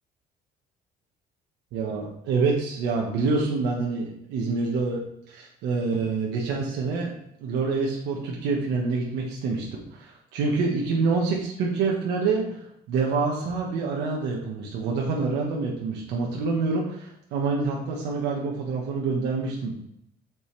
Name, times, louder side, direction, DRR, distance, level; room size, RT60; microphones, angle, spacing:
voice 1, 1.7-5.0 5.3-7.1 7.4-19.7, right 4 dB, 90° right, -2 dB, 1.3 m, -27 dB
8.3 x 5.3 x 3.3 m, 0.75 s
cardioid pair, 110°, 17 cm